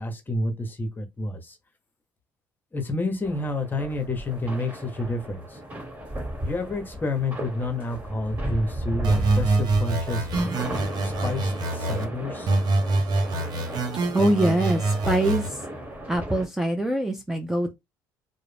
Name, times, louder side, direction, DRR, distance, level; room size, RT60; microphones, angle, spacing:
voice 1, 0.0-1.6 2.7-5.6 6.4-10.5 11.0-12.5, left 2 dB, 25° left, 0.9 m, -29 dB
sound 1, 3.2-16.5, right 1 dB, 20° right, 1.4 m, -35 dB
sound 2, 9.0-12.0 12.5-15.5, right 2 dB, 60° right, 0.7 m, -25 dB
voice 2, 14.1-15.6 16.1-17.7, right 1 dB, 5° right, 0.5 m, -24 dB
2.3 x 2.1 x 3.3 m
supercardioid pair, 75°, 8 cm